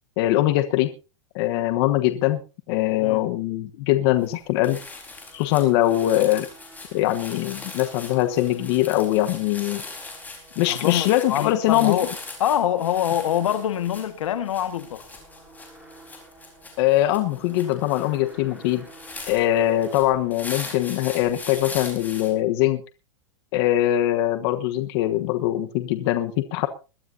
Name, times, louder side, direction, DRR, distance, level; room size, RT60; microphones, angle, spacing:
voice 1, 0.2-0.9 1.3-2.4 2.7-4.8 5.3-6.5 6.9-9.8 10.6-12.0 16.8-18.9 19.3-22.8 23.5-26.7, left 14 dB, 50° left, 1.2 m, -22 dB
sound 1, 4.2-4.4 4.6-22.3, left 3 dB, 10° left, 4.3 m, -40 dB
sound 2, 4.7-21.1, right 2 dB, 5° right, 6.5 m, -51 dB
voice 2, 10.7-12.1 12.4-15.0, left 10 dB, 85° left, 1.7 m, -25 dB
22.0 x 12.5 x 2.8 m
hypercardioid pair, 135°, 16 cm